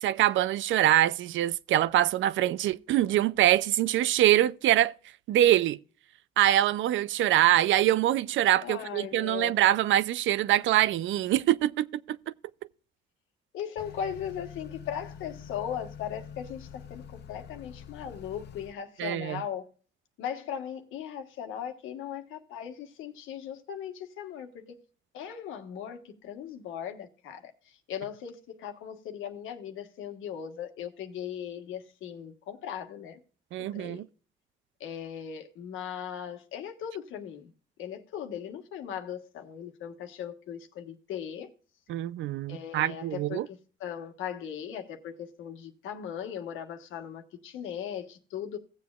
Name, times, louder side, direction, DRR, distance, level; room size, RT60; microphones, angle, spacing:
voice 1, 0.0-4.9 5.3-5.8 6.4-12.2 19.0-19.4 33.5-34.1 41.9-43.5, right 13 dB, 75° right, 0.5 m, -24 dB
voice 2, 8.6-9.5 13.5-19.7 20.2-24.8 25.1-33.2 33.6-34.0 34.8-37.5 37.8-41.5 42.5-48.6, left 9 dB, 90° left, 1.4 m, -38 dB
Motor vehicle (road) / Accelerating revving vroom, 13.8-18.7, left 8 dB, 55° left, 0.7 m, -46 dB
17.0 x 7.6 x 2.3 m
cardioid pair, 90°, 20 cm